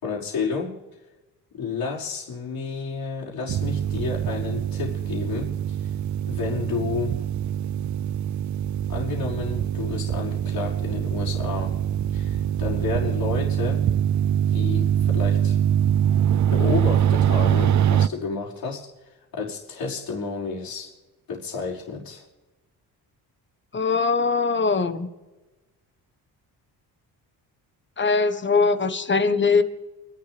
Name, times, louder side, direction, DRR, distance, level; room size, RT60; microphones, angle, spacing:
voice 1, 0.0-0.8 1.5-5.9 6.3-7.2 8.9-11.8 12.1-13.8 14.5-15.6 16.5-18.9 19.3-20.9 21.3-22.3, left 5 dB, 65° left, -4 dB, 5.5 m, -31 dB
sound 1, 3.5-18.1, right 10 dB, 50° right, 0.5 m, -23 dB
voice 2, 23.7-25.1 28.0-29.6, left 4 dB, 30° left, 9 dB, 1.4 m, -21 dB
29.5 x 12.0 x 3.4 m, 1.1 s
cardioid pair, 95°, 38 cm